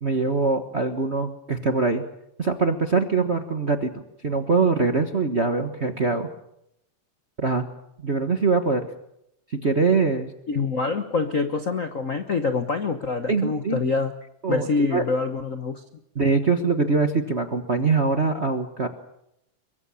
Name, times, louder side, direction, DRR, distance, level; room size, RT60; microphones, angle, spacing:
voice 1, 0.0-2.0 2.4-6.3 7.4-7.7 8.0-8.9 9.5-10.3 13.3-13.8 14.4-15.0 16.1-18.9, right 4 dB, 40° right, 6 dB, 0.9 m, -23 dB
voice 2, 10.5-14.1 14.5-15.8, left 4 dB, 80° left, 8 dB, 0.7 m, -25 dB
23.5 x 23.0 x 7.1 m, 0.80 s
omnidirectional pair, 3.3 m